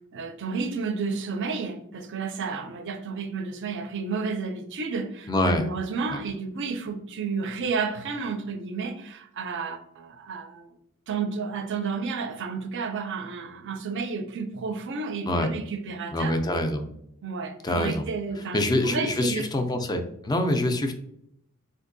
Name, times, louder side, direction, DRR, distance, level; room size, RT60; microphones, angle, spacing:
voice 1, 0.1-10.7 11.1-16.4 17.2-19.5, right 5 dB, 55° right, 8 dB, 0.4 m, -31 dB
voice 2, 5.3-5.7 6.1-6.2 15.2-15.5 16.1-16.9 17.6-18.0 18.5-20.9, left 1 dB, 20° left, 6 dB, 0.3 m, -25 dB
3.6 x 2.6 x 2.5 m, 0.74 s
head